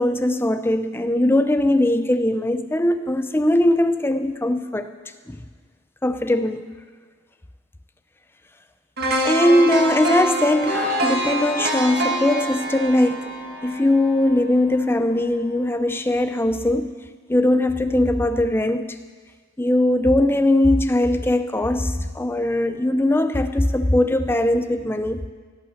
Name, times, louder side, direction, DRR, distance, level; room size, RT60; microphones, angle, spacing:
voice 1, 0.0-4.9 5.3-5.4 6.0-6.7 9.2-13.3 13.6-16.9 17.3-19.0 19.6-25.3, left 1 dB, 10° left, 9 dB, 0.5 m, -20 dB
sound 1, 9.0-15.0 15.4-15.5, right 1 dB, 50° right, 1.8 m, -26 dB
17.5 x 8.7 x 6.5 m, 1.5 s
head